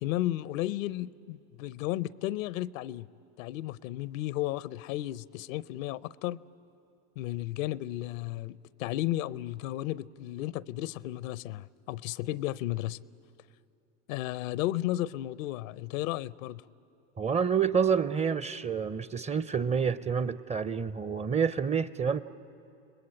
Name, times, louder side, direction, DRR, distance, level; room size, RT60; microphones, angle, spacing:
voice 1, 0.0-3.1 3.4-6.4 7.2-13.0 14.1-16.6, left 15 dB, 75° left, 20 dB, 0.6 m, -33 dB
voice 2, 17.2-22.2, right 6 dB, 15° right, 16 dB, 0.5 m, -28 dB
29.5 x 20.0 x 8.8 m, 2.7 s
hypercardioid pair, 90°, 40 cm